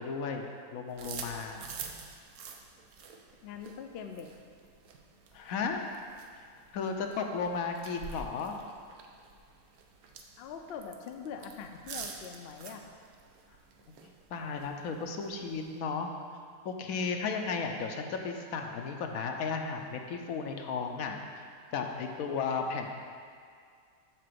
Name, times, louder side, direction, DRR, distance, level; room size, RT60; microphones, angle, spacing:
voice 1, 0.0-1.6 5.3-5.8 6.7-8.5 14.0-16.1 16.6-21.4 21.7-22.9, left 5 dB, 80° left, 4 dB, 1.1 m, -34 dB
sound 1, 0.9-15.8, right 5 dB, 85° right, 1.2 m, -48 dB
voice 2, 3.4-4.3 10.4-12.8 22.6-22.8, left 6 dB, 60° left, 5 dB, 0.7 m, -43 dB
7.7 x 3.8 x 6.7 m, 2.2 s
omnidirectional pair, 1.5 m